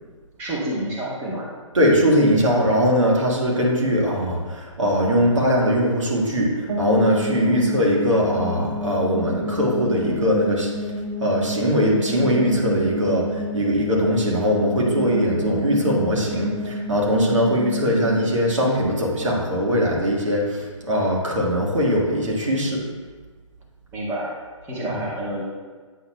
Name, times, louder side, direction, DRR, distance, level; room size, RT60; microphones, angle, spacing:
voice 1, 0.4-1.5 7.4-7.6 23.9-24.3 24.6-25.4, right 1 dB, 15° right, -5 dB, 1.3 m, -29 dB
voice 2, 1.7-10.7 11.2-22.8 24.8-25.0, equal, 70° right, -2 dB, 1.6 m, -21 dB
sound 1, 6.7-19.6, left 1 dB, 50° right, 1.3 m, -30 dB
8.3 x 5.8 x 2.2 m, 1.4 s
figure-of-eight pair, 140°, 17 cm